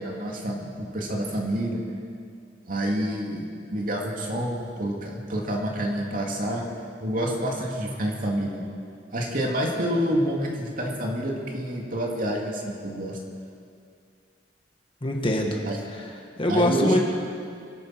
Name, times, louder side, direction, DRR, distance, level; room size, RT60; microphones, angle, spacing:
voice 1, 0.0-1.8 2.7-3.4 3.7-6.6 7.0-8.6 9.1-13.2 15.6-15.8 16.5-16.9, right 1 dB, 50° right, -1 dB, 2.6 m, -28 dB
voice 2, 15.0-15.6 15.9-16.1 16.4-17.0, left 1 dB, 30° left, 1 dB, 1.6 m, -23 dB
24.5 x 9.4 x 6.0 m, 2.3 s
head